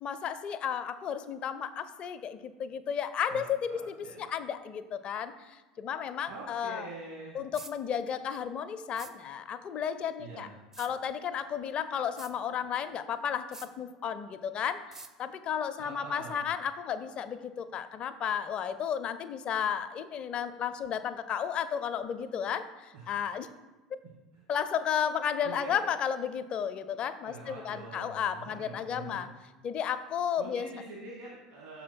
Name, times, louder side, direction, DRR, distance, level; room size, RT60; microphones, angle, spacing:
voice 1, 0.0-6.9 7.3-10.5 10.8-14.8 15.2-23.5 24.5-29.3 29.6-30.7, left 8 dB, 40° left, 11 dB, 0.4 m, -33 dB
voice 2, 3.7-4.3 6.2-7.4 10.2-10.5 15.8-16.4 22.9-23.1 24.3-24.4 25.4-25.8 27.2-29.2 30.4-31.8, right 3 dB, 60° right, -5 dB, 1.8 m, -45 dB
sound 1, 7.5-7.7 9.0-9.1 10.7-10.9 12.2-12.3 13.5-13.7 14.9-15.1, right 3 dB, 20° right, 0.5 m, -46 dB
6.1 x 4.2 x 4.4 m, 1.2 s
figure-of-eight pair, 75°, 3 cm